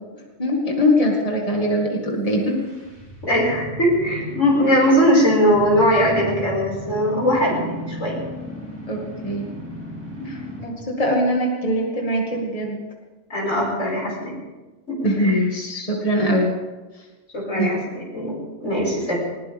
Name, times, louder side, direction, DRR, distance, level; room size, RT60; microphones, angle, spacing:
voice 1, 0.4-2.6 8.9-9.5 10.3-12.8 15.0-16.5 17.6-17.7, equal, 30° left, 0 dB, 2.3 m, -22 dB
sound 1, 2.2-10.9, left 1 dB, 10° right, 5.8 m, -36 dB
voice 2, 3.2-8.2 13.3-14.3 14.9-15.4 17.3-18.4 18.6-19.2, equal, 85° left, -3 dB, 6.3 m, -20 dB
20.0 x 20.0 x 3.6 m, 1.2 s
omnidirectional pair, 1.2 m